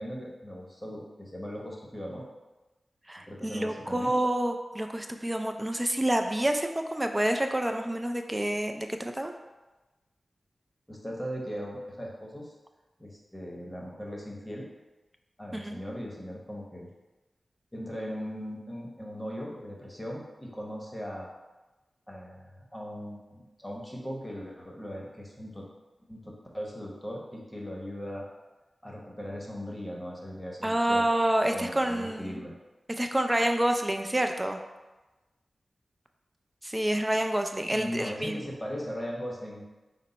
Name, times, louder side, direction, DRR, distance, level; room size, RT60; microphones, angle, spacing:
voice 1, 0.0-2.2 3.3-4.1 10.9-12.5 13.0-14.7 15.4-16.9 17.7-21.3 22.1-25.6 26.1-28.3 28.8-31.0 31.5-32.5 37.7-39.6, equal, 10° left, -2 dB, 1.0 m, -39 dB
voice 2, 3.1-9.3 15.5-15.8 30.6-32.5 33.0-34.6 36.6-38.4, right 1 dB, 20° right, 5 dB, 0.4 m, -28 dB
5.3 x 2.1 x 4.0 m, 1.1 s
cardioid pair, 40°, 0 cm